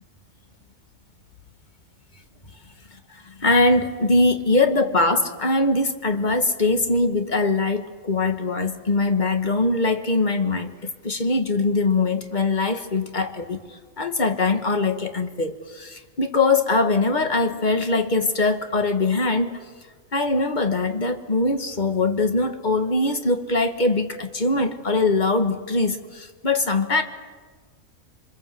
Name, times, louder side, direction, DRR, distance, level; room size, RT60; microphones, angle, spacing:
voice 1, 3.1-13.6 14.0-19.6 20.1-27.0, left 3 dB, 35° left, 6 dB, 1.8 m, -22 dB
27.5 x 24.0 x 7.8 m, 1.4 s
omnidirectional pair, 1.5 m